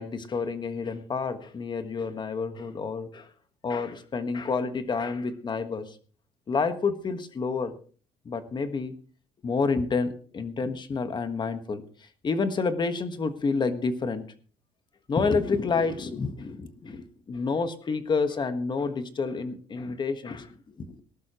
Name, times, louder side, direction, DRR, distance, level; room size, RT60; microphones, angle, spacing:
voice 1, 0.0-3.3 3.6-6.0 6.5-7.7 8.2-8.9 9.4-14.2 15.1-21.0, left 4 dB, 30° left, 9 dB, 1.5 m, -29 dB
19.0 x 11.5 x 3.1 m, 0.42 s
cardioid pair, 130°, 15 cm